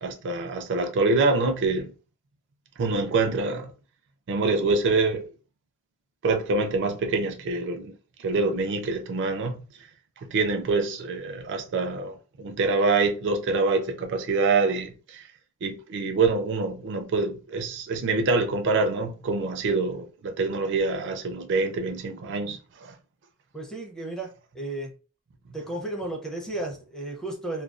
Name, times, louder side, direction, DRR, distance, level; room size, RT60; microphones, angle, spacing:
voice 1, 0.0-1.9 2.8-3.7 4.3-5.2 6.2-9.6 10.2-15.3 15.6-23.0, right 3 dB, 55° right, 0.4 m, -25 dB
voice 2, 23.5-24.9 25.5-27.6, right 2 dB, 5° left, 0.6 m, -34 dB
2.3 x 2.2 x 2.4 m
head